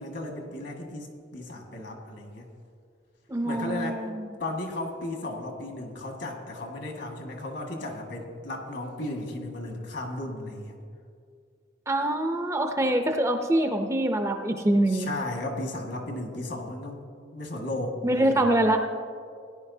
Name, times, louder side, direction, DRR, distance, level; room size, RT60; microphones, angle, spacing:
voice 1, 0.0-2.5 3.4-4.0 4.4-10.8 14.9-17.0 17.3-18.4, left 1 dB, 65° left, 1 dB, 1.7 m, -35 dB
voice 2, 3.3-4.3 11.9-15.1 18.0-18.8, right 1 dB, 15° right, 5 dB, 0.5 m, -24 dB
17.5 x 10.5 x 2.7 m, 2.3 s
head